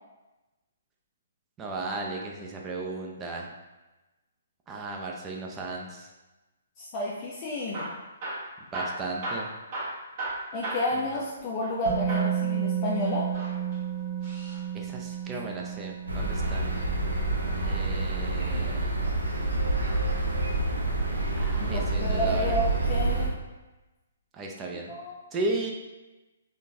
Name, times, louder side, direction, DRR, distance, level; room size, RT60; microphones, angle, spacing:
voice 1, 1.6-3.5 4.7-6.1 8.7-9.5 10.9-11.1 14.7-16.6 17.6-18.9 21.4-22.6 24.3-24.9 25.3-25.7, right 2 dB, 20° right, 0 dB, 0.5 m, -35 dB
voice 2, 6.8-7.9 10.5-13.3 21.7-23.4 24.9-25.2, left 1 dB, 30° left, -5 dB, 0.5 m, -30 dB
Hammer / Drill, 7.6-11.8 12.1-12.4 13.2-14.6 16.4-17.6 19.3-19.8 20.5-21.3 22.0-22.3 22.6-22.7 23.3-23.4, right 1 dB, 45° right, 1.4 m, -37 dB
Musical instrument, 11.9-19.8 20.0-20.2, right 9 dB, 65° right, 1.0 m, -33 dB
sound 1, 16.1-23.3, right 2 dB, 80° right, 0.6 m, -27 dB
3.6 x 2.4 x 2.7 m, 1.1 s
figure-of-eight pair, 135°, 0 cm